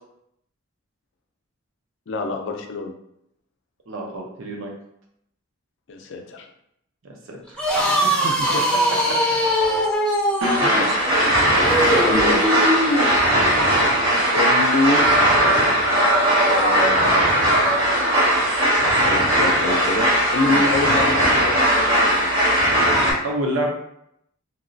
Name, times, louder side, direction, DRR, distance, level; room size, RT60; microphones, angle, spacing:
voice 1, 2.1-2.9 5.9-6.5 8.1-8.6 10.6-10.9 11.9-12.6 14.3-15.1 16.4-17.3 19.0-22.4, left 2 dB, 60° left, 3 dB, 0.5 m, -26 dB
voice 2, 3.9-4.7 7.3-7.7 8.0-8.1 9.1-9.2 10.4-10.9 20.4-20.6 23.2-23.7, equal, 70° right, 0 dB, 0.7 m, -28 dB
sound 1, 7.5-13.1, equal, 5° left, 0.6 m, -21 dB
sound 2, 10.4-23.1, right 1 dB, 85° right, 1.4 m, -18 dB
2.9 x 2.9 x 2.6 m, 0.76 s
head